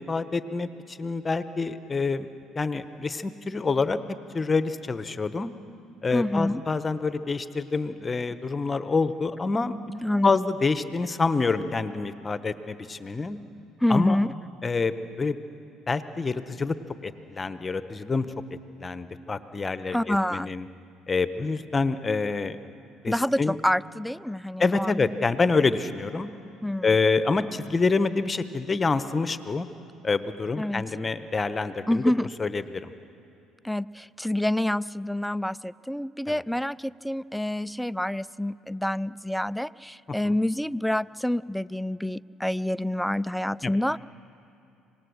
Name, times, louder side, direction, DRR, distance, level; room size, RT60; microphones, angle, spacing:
voice 1, 0.0-2.3 2.5-4.0 4.3-5.5 6.0-9.8 10.2-13.4 13.9-14.2 14.6-15.4 15.9-16.7 17.0-18.3 18.8-20.7 21.1-22.6 23.0-23.6 24.6-26.3 26.8-29.7 30.0-32.1 32.4-32.9 36.3-36.4 43.6-43.7, left 4 dB, 30° left, 13 dB, 1.0 m, -27 dB
voice 2, 6.1-6.6 9.9-10.5 13.8-14.3 19.9-20.6 23.1-24.9 25.4-25.6 26.6-26.9 30.6-30.9 31.9-32.3 33.6-44.0, left 1 dB, ahead, 19 dB, 0.4 m, -27 dB
25.5 x 19.0 x 6.5 m, 2.9 s
hypercardioid pair, 60°, 0 cm